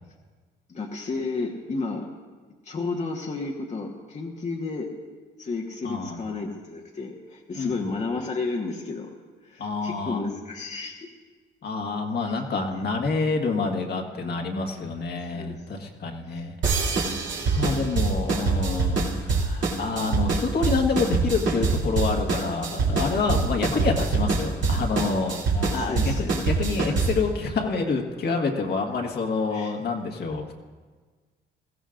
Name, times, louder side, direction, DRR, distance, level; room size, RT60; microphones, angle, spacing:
voice 1, 0.7-2.1 2.6-4.9 5.4-9.1 9.4-11.1 12.2-12.4 14.1-14.4 14.8-14.9 15.3-15.6 16.3-16.5 25.5-26.5 29.5-29.7, left 3 dB, 35° left, 0 dB, 1.3 m, -32 dB
voice 2, 5.8-6.2 7.5-7.7 9.6-10.2 11.6-16.5 17.4-25.4 25.7-30.5, left 4 dB, 55° left, 2 dB, 1.6 m, -27 dB
sound 1, 16.6-27.3, right 4 dB, 65° right, 2.8 m, -25 dB
20.5 x 15.5 x 2.5 m, 1.5 s
cardioid pair, 90°, 20 cm